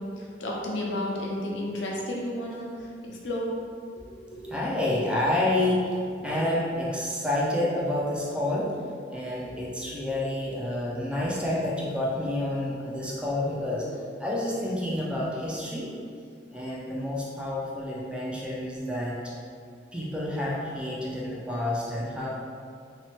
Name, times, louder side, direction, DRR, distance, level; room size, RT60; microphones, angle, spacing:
voice 1, 0.0-3.5 4.0-4.4, left 1 dB, 80° left, -2 dB, 0.5 m, -33 dB
voice 2, 4.4-8.7 9.1-15.9 16.5-19.3 19.9-22.3, left 1 dB, 5° right, -5 dB, 0.4 m, -29 dB
2.9 x 2.0 x 2.9 m, 2.3 s
head